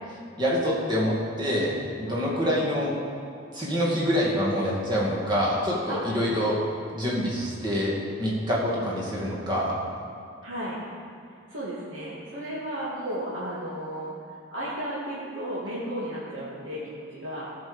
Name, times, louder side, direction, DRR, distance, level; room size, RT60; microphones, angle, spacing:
voice 1, 0.4-2.9 3.5-6.6 6.9-7.9 8.2-9.7, equal, 20° right, -5 dB, 2.3 m, -26 dB
voice 2, 2.1-2.6 5.9-6.0 8.5-8.7 10.4-10.8 11.5-14.1 14.5-17.5, right 1 dB, 60° right, -9 dB, 2.3 m, -34 dB
15.0 x 5.5 x 7.1 m, 2.4 s
head